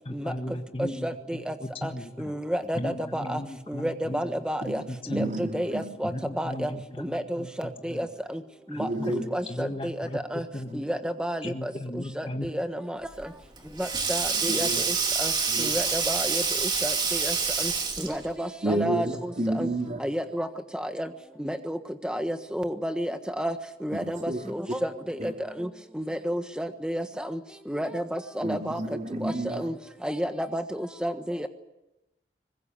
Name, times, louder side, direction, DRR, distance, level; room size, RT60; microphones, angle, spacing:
voice 1, 0.0-2.1 2.7-4.3 4.6-5.4 6.0-7.5 7.8-8.1 8.7-10.2 10.5-10.8 11.4-12.5, left 1 dB, 30° left, 1.6 m, -36 dB
voice 2, 1.0-1.5 1.8-1.9 2.2-3.4 3.7-4.8 5.1-6.1 6.4-6.7 7.0-8.1 8.3-8.4 8.7-9.9 10.3-10.4 10.7-11.7 12.2-13.0 13.8-14.7 15.2-15.3 15.6-17.7 18.0-19.1 19.5-19.7 20.0-20.5 20.7-21.1 21.4-21.8 22.0-23.5 23.8-25.3 25.6-25.7 25.9-27.4 27.7-28.8 29.2-29.7 30.0-31.5, equal, 5° right, 1.4 m, -31 dB
voice 3, 5.1-5.8 8.8-9.3 14.5-14.8 15.5-15.7 18.6-20.0 23.9-24.4 25.2-25.3 28.4-29.7, right 1 dB, 40° right, 2.9 m, -30 dB
Sink (filling or washing), 13.1-18.3, right 5 dB, 25° right, 2.7 m, -27 dB
23.5 x 20.5 x 9.0 m
head